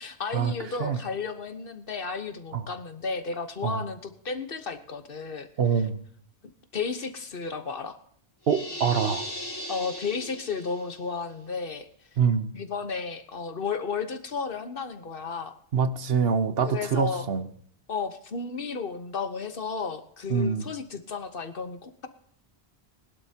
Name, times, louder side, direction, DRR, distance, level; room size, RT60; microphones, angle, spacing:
voice 1, 0.0-5.5 6.7-8.0 9.7-11.9 12.5-15.5 16.6-17.3 17.9-22.1, left 5 dB, 55° left, 9 dB, 1.3 m, -33 dB
voice 2, 5.6-6.0 8.5-9.2 12.2-12.5 15.7-17.5 20.3-20.6, right 6 dB, 65° right, 11 dB, 1.1 m, -25 dB
sound 1, 8.4-11.0, left 1 dB, 20° left, 2.5 m, -37 dB
20.5 x 11.5 x 2.9 m, 0.62 s
omnidirectional pair, 1.1 m